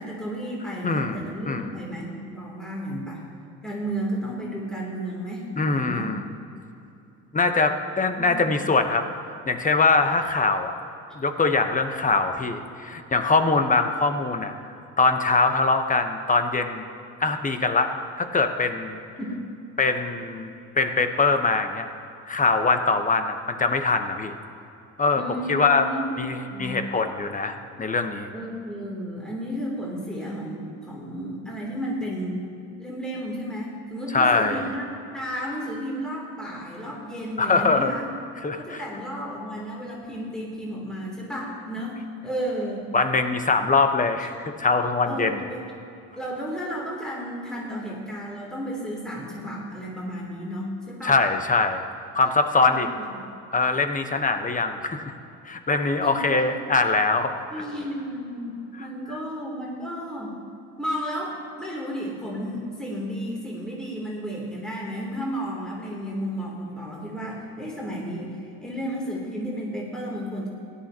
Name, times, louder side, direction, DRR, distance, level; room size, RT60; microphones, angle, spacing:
voice 1, 0.0-3.2 3.6-6.1 8.2-8.4 19.2-19.3 25.1-26.2 26.5-26.8 28.3-32.4 32.8-34.8 35.1-38.1 38.6-42.0 42.2-42.9 44.3-44.4 45.0-45.7 46.2-51.1 52.6-53.0 56.0-56.6 57.5-60.4 60.8-70.5, equal, ahead, -4 dB, 3.0 m, -33 dB
voice 2, 0.8-1.2 1.4-1.7 5.6-6.2 7.3-9.1 9.5-10.7 11.2-14.5 15.0-16.8 17.2-19.0 19.8-20.5 20.7-21.9 22.3-24.3 25.0-25.2 25.5-25.9 26.2-28.3 34.1-34.7 37.4-38.0 38.4-38.8 42.9-45.4 51.0-51.8 52.1-52.9 53.5-55.0 55.5-57.6, left 3 dB, 25° left, 7 dB, 1.0 m, -23 dB
17.0 x 11.5 x 2.9 m, 2.7 s
supercardioid pair, 75°, 33 cm